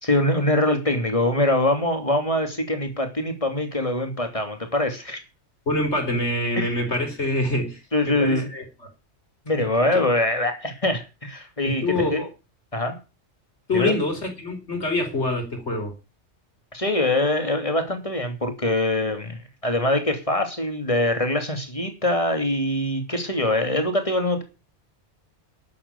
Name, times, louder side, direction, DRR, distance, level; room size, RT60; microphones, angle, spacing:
voice 1, 0.0-5.2 6.6-6.8 7.5-7.6 7.9-8.5 9.5-12.2 12.7-13.0 13.7-13.9 16.7-24.4, left 1 dB, 30° left, 3.0 m, -23 dB
voice 2, 5.7-8.6 9.9-10.0 11.6-12.3 13.7-15.9, left 2 dB, 70° left, 4.7 m, -25 dB
12.0 x 8.5 x 8.5 m
omnidirectional pair, 1.2 m